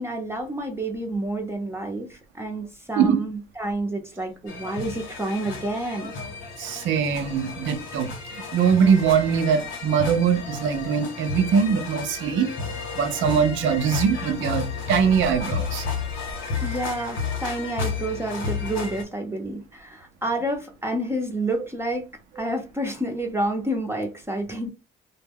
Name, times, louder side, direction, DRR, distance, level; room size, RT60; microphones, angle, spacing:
voice 1, 0.0-6.1 16.6-22.1 22.4-24.7, right 1 dB, 10° right, 0.7 m, -29 dB
sound 1, 4.5-19.0, left 5 dB, 85° left, 1.0 m, -32 dB
voice 2, 6.6-12.5 13.0-15.8, right 7 dB, 75° right, 0.6 m, -22 dB
2.2 x 2.1 x 3.4 m
cardioid pair, 90°, 20 cm